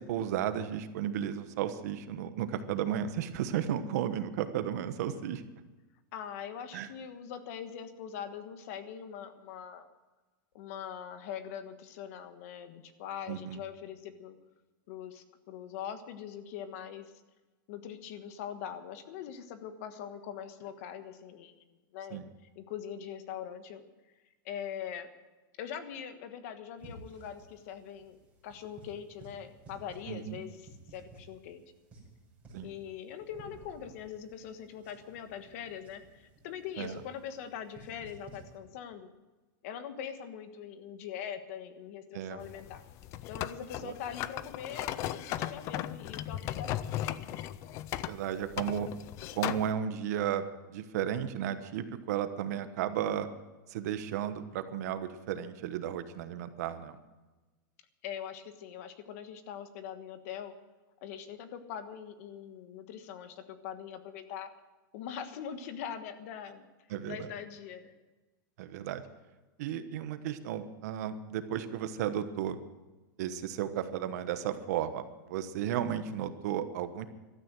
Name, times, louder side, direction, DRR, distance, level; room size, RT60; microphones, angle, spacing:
voice 1, 0.0-5.4 6.7-6.9 13.3-13.6 22.1-22.2 30.1-30.4 32.5-32.7 36.8-36.9 42.1-42.4 43.8-43.9 48.1-48.9 49.4-53.3 53.7-57.0 66.9-67.3 68.6-69.0 69.6-72.6 73.2-75.0 75.3-77.1, right 10 dB, 50° right, 10 dB, 1.2 m, -34 dB
voice 2, 6.1-9.9 10.5-14.4 14.9-17.1 17.7-22.2 22.5-23.8 24.4-25.1 25.6-31.6 32.6-39.1 39.6-42.8 43.3-47.1 58.0-60.5 61.0-64.5 64.9-66.7 67.1-68.0, left 8 dB, 45° left, 9 dB, 1.3 m, -42 dB
sound 1, 26.8-38.6, right 2 dB, 10° right, 5.8 m, -55 dB
sound 2, 42.4-49.7, left 13 dB, 25° left, 0.4 m, -37 dB
16.0 x 13.0 x 6.2 m, 1.2 s
supercardioid pair, 175°, 11 cm